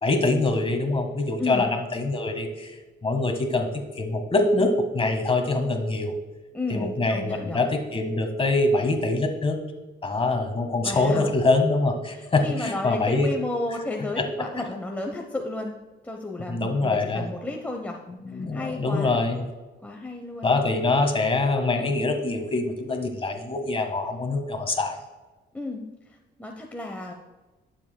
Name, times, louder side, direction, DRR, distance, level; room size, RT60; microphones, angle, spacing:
voice 1, 0.0-1.7 1.9-2.7 3.0-6.1 6.7-9.6 10.0-13.3 14.2-14.3 16.5-17.2 18.2-19.4 20.4-24.9, left 2 dB, 25° left, 5 dB, 1.6 m, -24 dB
voice 2, 6.5-7.6 10.8-11.3 12.1-15.7 16.0-18.0 18.3-19.2 19.8-20.6 25.5-27.1, left 2 dB, 10° left, 1 dB, 0.9 m, -33 dB
12.0 x 7.3 x 2.2 m, 1.2 s
cardioid pair, 90°, 20 cm